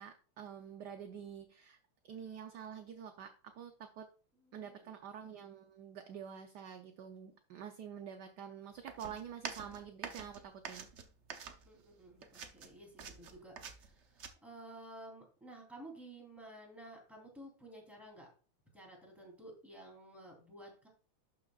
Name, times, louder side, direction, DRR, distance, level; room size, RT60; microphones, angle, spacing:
voice 1, 0.0-1.8 2.0-4.1 4.5-10.9, right 8 dB, 70° right, 7 dB, 1.0 m, -48 dB
voice 2, 4.4-4.9 5.2-5.4 11.6-18.3 18.7-20.9, right 1 dB, ahead, -2 dB, 3.1 m, -53 dB
sound 1, 8.9-11.9 12.2-14.3, right 6 dB, 90° right, 0.6 m, -47 dB
11.5 x 6.3 x 2.4 m, 0.39 s
omnidirectional pair, 2.4 m